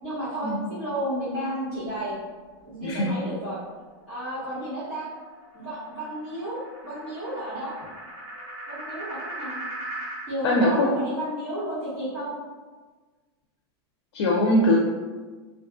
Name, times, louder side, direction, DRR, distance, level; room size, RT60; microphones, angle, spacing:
voice 1, 0.0-2.2 2.6-3.6 4.1-5.1 5.5-7.7 8.7-9.6 10.3-12.3, right 1 dB, 20° right, -17 dB, 1.2 m, -32 dB
sound 1, 3.6-10.3, right 1 dB, 80° right, 1.4 m, -40 dB
voice 2, 10.4-10.9 14.1-14.8, left 1 dB, 80° left, -1 dB, 0.4 m, -21 dB
2.5 x 2.3 x 2.5 m, 1.4 s
supercardioid pair, 160°, 14 cm